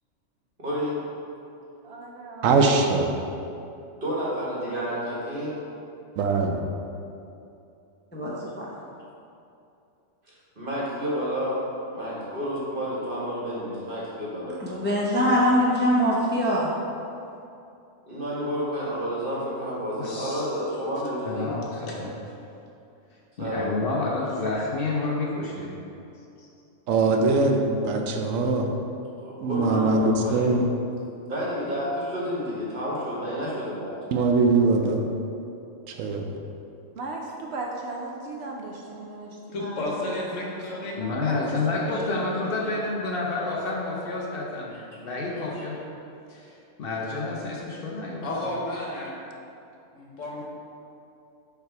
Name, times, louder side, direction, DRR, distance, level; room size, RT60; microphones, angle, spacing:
voice 1, 0.6-1.0 4.0-5.6 10.5-14.6 18.1-21.6 23.4-23.7 29.2-30.5 31.3-34.0 44.7-44.8 45.5-45.6, equal, 45° right, -7 dB, 1.7 m, -30 dB
voice 2, 1.8-2.9 37.0-41.9, right 2 dB, 65° right, 0 dB, 0.8 m, -38 dB
voice 3, 2.4-3.1 6.2-6.6 26.9-28.7 29.4-30.6 34.1-35.0 35.9-36.2, right 3 dB, 85° right, 3 dB, 1.0 m, -22 dB
voice 4, 8.1-8.7 14.6-16.7, equal, 10° left, -5 dB, 0.5 m, -23 dB
voice 5, 20.0-20.5 21.2-22.2 23.4-25.8 41.0-45.9 46.3-48.4, left 3 dB, 55° left, -2 dB, 0.8 m, -29 dB
voice 6, 39.5-41.0 41.2-41.4 41.9-42.7 48.2-49.1 49.9-50.4, left 2 dB, 75° left, -3 dB, 1.4 m, -32 dB
6.7 x 3.4 x 4.6 m, 2.7 s
omnidirectional pair, 1.3 m